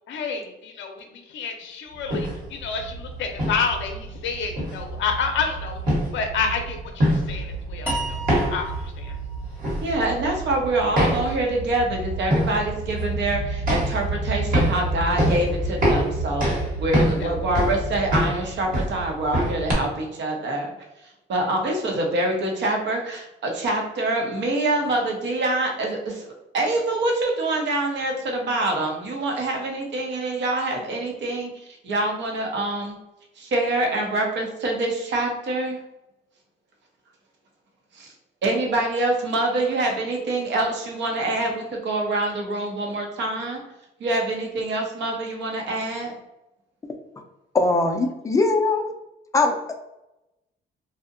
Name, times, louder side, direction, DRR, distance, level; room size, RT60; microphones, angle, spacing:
voice 1, 0.1-5.8 6.1-9.2 17.0-17.3, left 5 dB, 70° left, 4 dB, 0.5 m, -29 dB
sound 1, 2.0-19.7, right 1 dB, 45° right, 1.1 m, -26 dB
sound 2, 7.9-11.0, right 2 dB, 10° right, 0.9 m, -34 dB
voice 2, 9.8-16.5 16.8-20.7 21.3-26.2 26.5-31.5 31.8-33.0 33.4-35.8 37.9-38.1 38.4-43.6 44.0-46.1, right 2 dB, 65° right, 1 dB, 0.7 m, -25 dB
voice 3, 47.5-48.8 49.3-49.6, left 3 dB, 15° left, 4 dB, 0.4 m, -20 dB
2.6 x 2.1 x 2.5 m, 0.93 s
cardioid pair, 90°, 20 cm